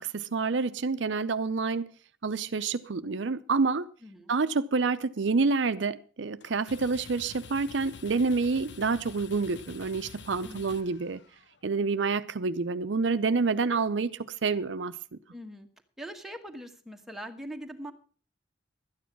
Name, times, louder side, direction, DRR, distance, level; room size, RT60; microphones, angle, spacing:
voice 1, 0.0-1.9 2.2-3.8 4.3-11.2 11.6-14.9, right 4 dB, 75° right, 0.6 m, -28 dB
voice 2, 4.0-4.4 10.4-10.8 15.3-15.7 16.0-17.9, equal, ahead, 1.3 m, -42 dB
sound 1, 6.4-11.6, left 5 dB, 65° left, 0.9 m, -48 dB
12.5 x 9.4 x 6.0 m
head